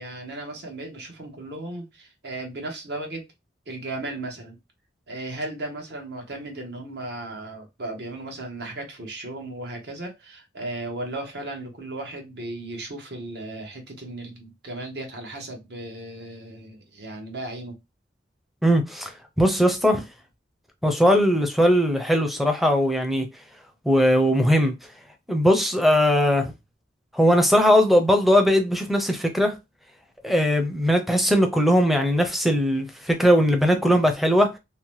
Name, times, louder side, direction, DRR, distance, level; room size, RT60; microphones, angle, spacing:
voice 1, 0.0-3.2 3.7-4.6 5.1-17.7, right 2 dB, 65° right, 0.9 m, -36 dB
voice 2, 18.6-20.0 20.8-23.3 23.8-24.7 25.3-26.5 27.1-29.5 30.2-34.5, equal, ahead, 0.5 m, -19 dB
2.8 x 2.0 x 3.0 m
head